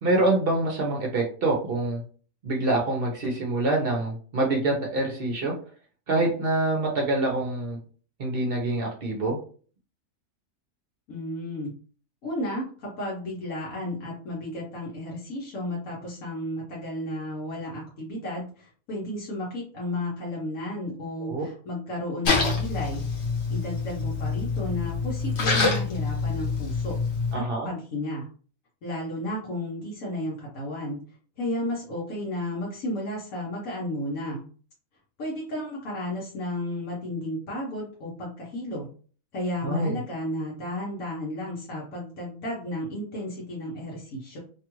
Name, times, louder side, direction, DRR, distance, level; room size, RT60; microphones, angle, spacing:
voice 1, 0.0-2.0 2.4-5.5 6.1-7.8 8.2-9.4 21.2-21.4 27.3-27.7 39.6-40.0, right 2 dB, 55° right, 0 dB, 0.7 m, -25 dB
voice 2, 11.1-11.7 12.2-23.0 23.5-27.0 27.3-28.3 28.8-31.0 31.4-34.4 35.2-38.9 39.3-44.4, left 1 dB, 80° left, -5 dB, 1.3 m, -33 dB
Splash splatter, 22.2-27.3, left 4 dB, 55° left, 1.1 m, -26 dB
2.9 x 2.3 x 2.9 m, 0.42 s
omnidirectional pair, 1.5 m